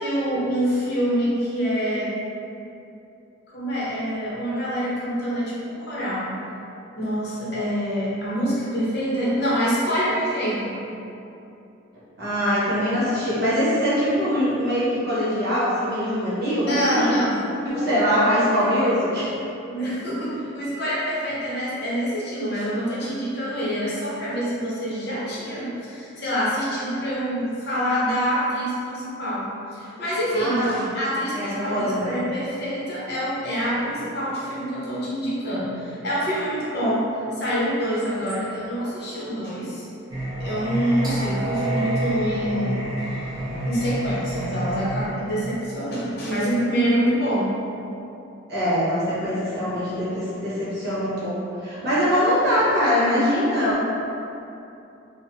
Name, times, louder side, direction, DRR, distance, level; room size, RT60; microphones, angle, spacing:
voice 1, 0.0-2.1 3.5-6.4 7.0-10.8 16.6-17.4 17.7-18.0 19.1-19.3 19.7-39.8 40.4-42.8 43.0-43.2 43.6-47.5, equal, 50° left, -7 dB, 0.7 m, -26 dB
voice 2, 12.2-17.2 17.7-19.3 30.3-30.8 31.3-32.1 48.5-53.9, equal, 50° right, -10 dB, 1.0 m, -23 dB
Singing, 40.1-45.1, right 1 dB, 20° right, 0.6 m, -28 dB
4.1 x 2.0 x 2.6 m, 2.7 s
head